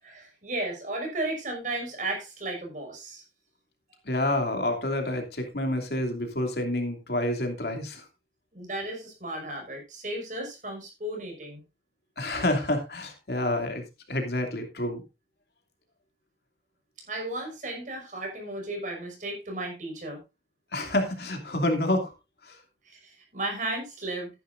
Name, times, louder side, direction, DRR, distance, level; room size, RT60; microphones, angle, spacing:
voice 1, 0.0-3.2 8.5-11.6 17.1-20.2 22.8-24.3, right 2 dB, 45° right, 1 dB, 6.1 m, -34 dB
voice 2, 4.0-8.1 12.2-15.0 20.7-22.1 22.4-22.6, left 1 dB, 65° left, 4 dB, 2.8 m, -28 dB
14.0 x 10.5 x 2.6 m, 0.25 s
head